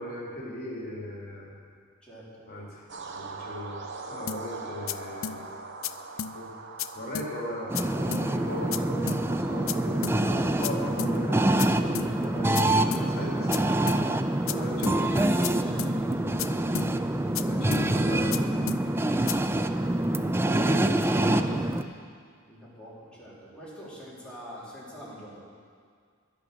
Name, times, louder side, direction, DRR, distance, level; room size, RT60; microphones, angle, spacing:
voice 1, 0.0-1.5 2.5-2.8 3.1-5.4 6.2-6.5 6.9-13.6 14.4-14.9 17.4-18.5 20.5-21.6, left 1 dB, 50° left, -4 dB, 3.2 m, -37 dB
voice 2, 2.0-2.4 14.5-16.6 19.2-20.0 22.4-25.4, equal, 5° left, -8 dB, 3.5 m, -45 dB
sound 1, 2.9-13.4, right 4 dB, 60° right, 1.1 m, -43 dB
sound 2, 4.3-4.4 4.9-5.0 5.2-5.4 5.8-5.9 6.2-6.3 6.8-6.9 7.2-7.3 7.8-7.9 8.1-8.3 8.7-8.8 9.1-9.2 9.7-9.8 10.0-10.2 10.6-10.7 11.0-11.1 11.6-11.7 12.0-12.1 12.6-12.7 12.9-13.1 13.5-13.6 13.9-14.0 14.5-14.6 14.8-15.0 15.4-15.5 15.8-15.9 16.4-16.5 16.8-16.9 17.4-17.5 17.7-17.9 18.3-18.4 18.7-18.8 19.3-19.4, left 10 dB, 80° left, 0.4 m, -33 dB
sound 3, 7.7-21.8, right 1 dB, 10° right, 0.4 m, -26 dB
12.0 x 10.5 x 6.7 m, 2.1 s
head